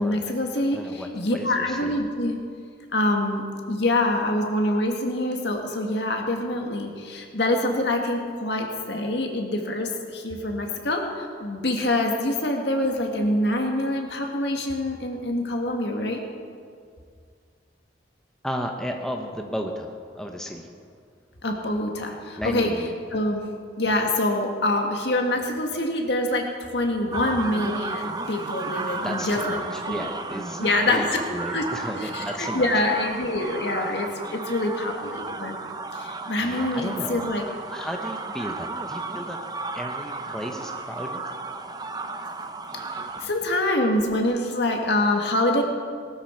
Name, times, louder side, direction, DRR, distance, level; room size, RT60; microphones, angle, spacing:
voice 1, 0.0-2.4 2.9-16.2 21.4-22.7 23.1-23.4 23.8-30.1 30.6-31.0 31.5-31.6 32.0-35.6 35.9-37.5 42.7-45.6, left 1 dB, 70° left, 2 dB, 1.9 m, -25 dB
voice 2, 0.7-1.9 18.4-20.7 22.4-22.9 28.9-32.7 36.4-39.4 39.7-41.3, equal, 5° left, 2 dB, 1.0 m, -34 dB
sound 1, 27.1-43.3, right 3 dB, 20° right, 0.6 m, -34 dB
19.5 x 12.5 x 4.6 m, 2.2 s
head